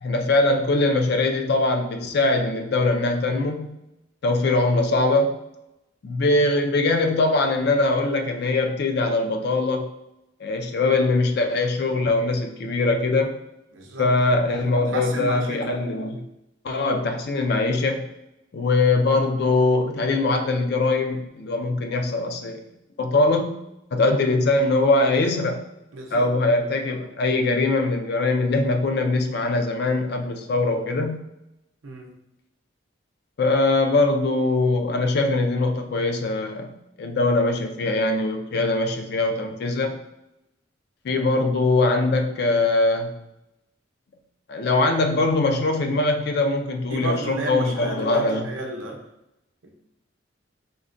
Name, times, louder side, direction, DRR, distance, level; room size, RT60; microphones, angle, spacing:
voice 1, 0.0-3.8 4.2-5.4 6.0-9.9 10.4-13.3 14.0-16.3 16.6-18.1 18.5-22.6 23.0-23.6 23.9-25.6 26.1-31.2 33.4-36.7 37.0-40.0 41.0-43.2 44.5-48.5, left 2 dB, 55° left, 5 dB, 0.4 m, -22 dB
voice 2, 13.7-14.3 14.9-15.6 25.9-26.3 31.8-32.1 46.9-49.1 49.6-49.7, right 2 dB, 80° right, 1 dB, 0.6 m, -32 dB
3.6 x 2.1 x 2.5 m, 0.89 s
head